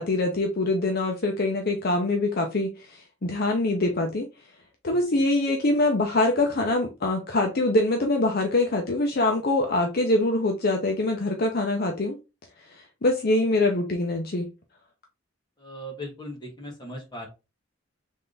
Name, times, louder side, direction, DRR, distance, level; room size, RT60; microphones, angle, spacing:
voice 1, 0.0-4.3 4.8-12.2 13.0-14.5, left 2 dB, 50° left, 0.7 m, -24 dB
voice 2, 15.6-17.3, equal, 20° left, 1.6 m, -38 dB
3.6 x 3.4 x 3.9 m
head